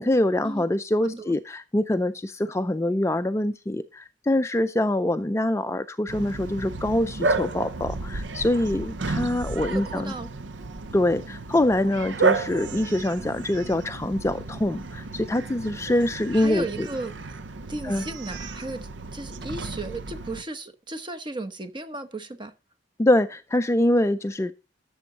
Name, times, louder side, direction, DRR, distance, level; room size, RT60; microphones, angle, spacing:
voice 1, 0.0-10.1 10.9-16.9 17.8-18.0 23.0-24.5, left 1 dB, 15° left, 0.4 m, -24 dB
voice 2, 1.0-1.4 9.7-10.3 16.3-17.1 17.7-22.5, right 2 dB, 25° right, 1.0 m, -35 dB
Bark, 6.1-20.4, right 3 dB, 85° right, 0.8 m, -32 dB
12.5 x 7.1 x 3.9 m
head